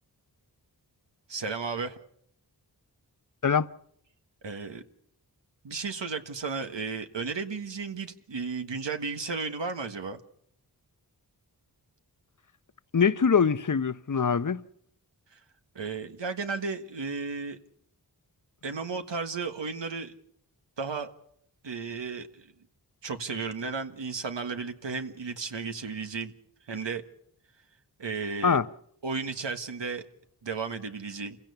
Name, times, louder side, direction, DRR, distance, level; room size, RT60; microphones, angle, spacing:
voice 1, 1.3-2.0 4.4-4.8 5.6-10.2 15.3-15.4 15.7-17.6 18.6-20.1 20.8-21.1 21.6-22.5 23.0-26.3 26.7-27.0 28.0-28.6 29.0-30.0 30.4-31.4, right 4 dB, 85° right, 1.6 m, -34 dB
voice 2, 12.9-14.6 28.4-28.7, left 6 dB, 45° left, 0.8 m, -23 dB
28.0 x 16.5 x 6.9 m
cardioid pair, 45°, 42 cm